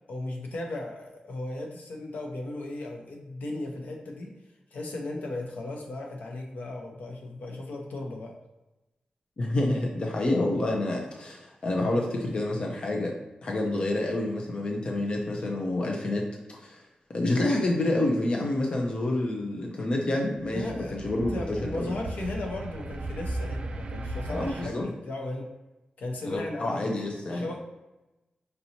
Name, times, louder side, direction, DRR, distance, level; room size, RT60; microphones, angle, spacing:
voice 1, 0.1-4.3 4.7-8.3 20.5-25.5 26.0-26.9 27.3-27.6, left 2 dB, 90° left, 1 dB, 0.8 m, -36 dB
voice 2, 9.4-13.1 13.4-16.2 16.6-16.8 17.1-21.9 24.3-24.9 26.3-27.4, left 1 dB, 40° left, 0 dB, 0.6 m, -28 dB
sound 1, 20.4-24.7, right 2 dB, 40° right, 0.3 m, -36 dB
5.3 x 2.9 x 2.7 m, 1.0 s
wide cardioid pair, 160°, 3 cm